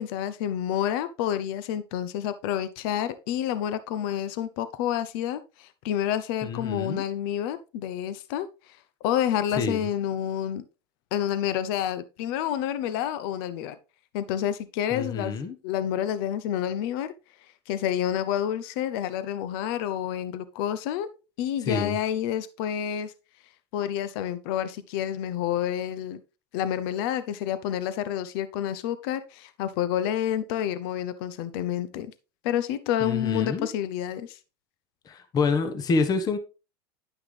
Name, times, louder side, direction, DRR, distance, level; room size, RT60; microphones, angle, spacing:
voice 1, 0.0-8.5 9.0-10.6 11.1-13.8 14.1-15.4 15.6-17.1 17.7-21.1 21.4-23.1 23.7-26.2 26.5-32.1 32.4-34.4, left 10 dB, 65° left, 14 dB, 0.7 m, -29 dB
voice 2, 6.4-7.0 9.5-9.9 14.9-15.5 21.6-22.0 33.0-33.7 35.0-36.4, left 4 dB, 30° left, 10 dB, 1.1 m, -27 dB
10.0 x 5.8 x 3.3 m, 0.31 s
supercardioid pair, 120°, 13 cm